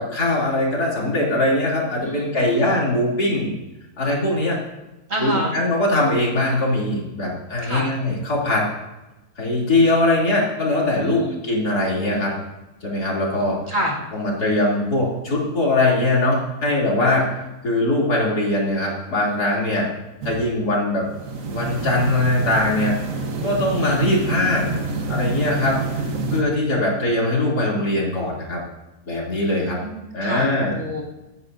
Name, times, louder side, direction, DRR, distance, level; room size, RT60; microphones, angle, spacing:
voice 1, 0.0-3.5 4.0-4.6 5.2-8.7 9.4-12.3 12.8-13.6 14.1-17.4 17.6-19.9 20.2-21.1 21.5-22.9 23.4-24.7 25.1-26.0 26.3-28.6 29.1-29.8 30.1-30.8, left 2 dB, 85° left, -4 dB, 3.6 m, -21 dB
voice 2, 2.0-2.7 5.1-5.5 7.6-7.9 11.0-11.4 13.7-13.9 29.2-31.0, right 1 dB, 45° right, -3 dB, 2.6 m, -29 dB
sound 1, 20.2-20.6 21.0-26.4, right 3 dB, 60° right, 1.6 m, -27 dB
24.0 x 9.7 x 2.7 m, 1.0 s
omnidirectional pair, 1.6 m